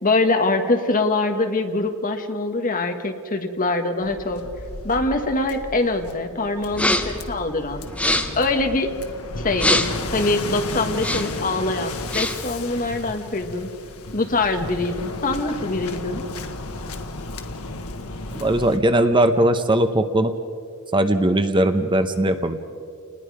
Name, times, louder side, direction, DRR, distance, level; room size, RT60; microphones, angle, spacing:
voice 1, 0.0-4.4 4.8-7.9 8.4-8.9 9.4-13.7 14.1-16.2, left 2 dB, 40° left, 5 dB, 1.5 m, -23 dB
Waves surf, 4.0-18.8, left 2 dB, 85° left, 1.4 m, -34 dB
sound 1, 6.7-7.2 7.9-8.5 9.5-10.1 10.9-11.4 11.9-12.5, left 1 dB, 5° left, 1.1 m, -24 dB
voice 2, 18.4-20.3 20.9-22.6, right 1 dB, 20° right, 9 dB, 0.8 m, -19 dB
29.0 x 20.0 x 4.9 m, 2.4 s
head